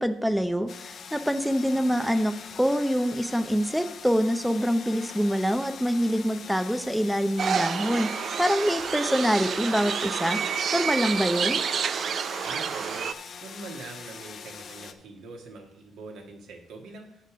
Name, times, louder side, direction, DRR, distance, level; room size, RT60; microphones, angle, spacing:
voice 1, 0.0-10.4 10.7-11.6, equal, ahead, 9 dB, 0.6 m, -25 dB
sound 1, 0.7-14.9, left 6 dB, 55° left, 0.7 m, -43 dB
sound 2, 7.4-13.1, right 7 dB, 55° right, 0.4 m, -29 dB
voice 2, 12.4-17.2, right 3 dB, 80° right, 2 dB, 1.8 m, -43 dB
6.7 x 6.6 x 6.2 m, 0.73 s
cardioid pair, 90°, 0 cm